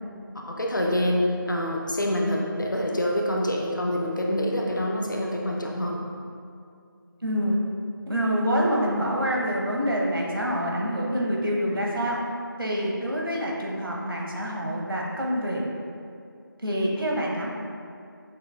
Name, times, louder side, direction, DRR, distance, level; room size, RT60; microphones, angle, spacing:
voice 1, 0.4-6.0, left 1 dB, 60° left, -1 dB, 0.5 m, -26 dB
voice 2, 7.2-7.6 8.1-12.2 12.6-15.6 16.6-17.5, equal, 70° right, -3 dB, 0.9 m, -26 dB
6.2 x 2.3 x 2.3 m, 2.3 s
figure-of-eight pair, 170°, 12 cm